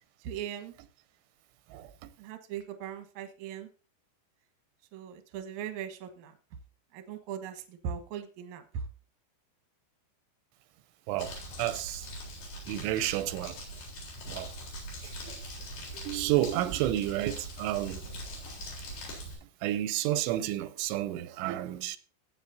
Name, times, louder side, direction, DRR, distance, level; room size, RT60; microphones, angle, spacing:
voice 1, 0.2-0.8 2.2-3.7 4.9-6.4 6.9-8.9, right 8 dB, 65° right, 2.0 m, -39 dB
voice 2, 1.7-2.1 11.1-12.1 12.7-13.6 14.3-14.5 15.0-15.4 15.9-18.1 19.6-22.0, right 13 dB, 90° right, 3.1 m, -31 dB
Crumpling crinkling, 11.2-19.3, equal, 60° left, 5.5 m, -42 dB
16.5 x 8.6 x 2.7 m
omnidirectional pair, 5.3 m